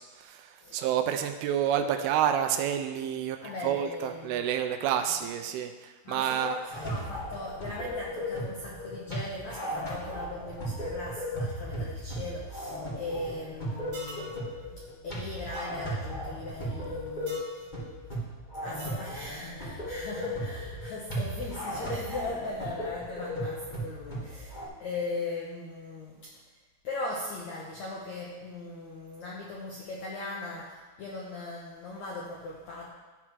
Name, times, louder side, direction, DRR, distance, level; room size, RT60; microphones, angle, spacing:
voice 1, 0.2-6.6, right 9 dB, 80° right, 8 dB, 2.4 m, -29 dB
voice 2, 3.4-4.5 5.0-5.1 6.0-14.5 14.8-17.7 18.6-26.4 26.8-32.9, left 2 dB, 80° left, -3 dB, 1.6 m, -39 dB
sound 1, 6.7-24.6, equal, 60° left, 0.5 m, -36 dB
sound 2, 13.9-14.3 15.5-15.7 17.3-17.5 18.8-19.1, right 1 dB, 45° right, 1.3 m, -44 dB
12.0 x 5.9 x 4.6 m, 1.3 s
omnidirectional pair, 4.7 m